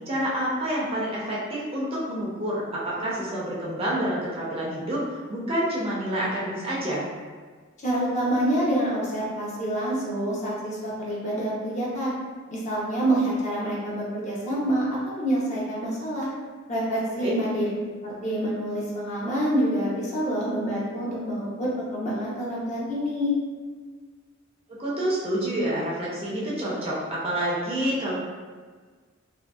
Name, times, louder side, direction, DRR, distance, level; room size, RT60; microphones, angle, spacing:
voice 1, 0.1-5.0 5.3-7.0 17.2-17.3 24.8-28.1, right 1 dB, 30° right, -6 dB, 0.5 m, -28 dB
voice 2, 7.8-12.1 12.5-16.3 16.7-17.7 18.0-23.3, right 1 dB, 35° left, -6 dB, 0.6 m, -27 dB
2.7 x 2.6 x 2.3 m, 1.5 s
head